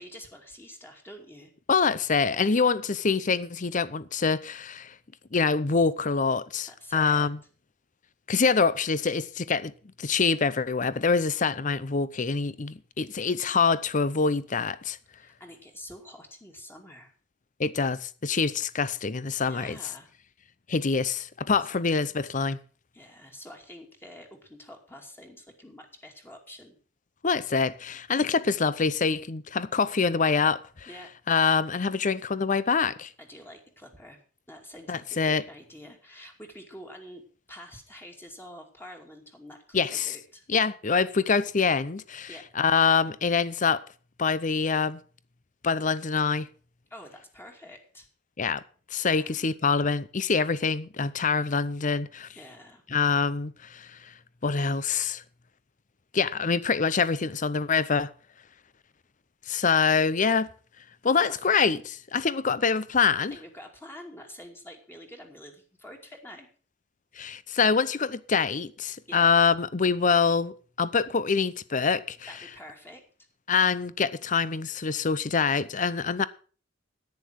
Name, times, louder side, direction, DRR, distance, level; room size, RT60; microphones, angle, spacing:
voice 1, 0.0-1.5 6.7-7.3 15.2-17.1 19.4-20.1 22.9-26.8 30.9-31.1 33.2-34.2 34.5-40.4 42.3-42.5 46.9-48.1 49.0-49.4 52.3-52.8 61.1-61.4 63.1-66.5 69.1-69.3 72.2-73.0, equal, 10° left, 2.5 m, -47 dB
voice 2, 1.7-4.9 5.3-7.4 8.3-9.7 10.0-15.0 17.6-19.8 20.7-22.6 27.2-30.6 31.3-33.1 34.9-35.4 39.7-40.1 40.5-43.8 44.2-45.0 45.6-46.5 48.4-48.6 48.9-52.3 52.9-54.0 54.4-55.2 56.1-58.1 59.5-60.5 61.0-63.4 67.2-70.5 70.8-72.2 73.5-76.3, left 5 dB, 45° left, 0.7 m, -25 dB
10.5 x 9.5 x 6.3 m
head